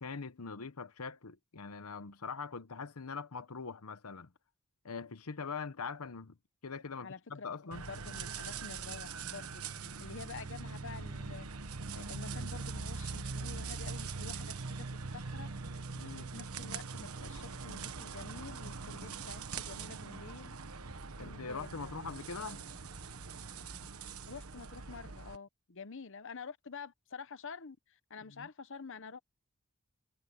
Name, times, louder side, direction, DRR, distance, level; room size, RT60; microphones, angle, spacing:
voice 1, 0.0-4.3 4.8-6.4 6.6-7.9 15.9-16.3 21.2-22.6 28.3-28.5, left 5 dB, 85° left, 1.0 m, -42 dB
voice 2, 7.0-7.5 7.8-11.5 11.9-14.9 15.1-15.5 16.2-20.5 21.2-21.9 24.3-29.2, left 5 dB, 60° left, 0.9 m, -48 dB
sound 1, 7.7-25.4, right 4 dB, 80° right, 1.2 m, -42 dB
sound 2, 8.9-24.1, equal, ahead, 6.2 m, -60 dB
head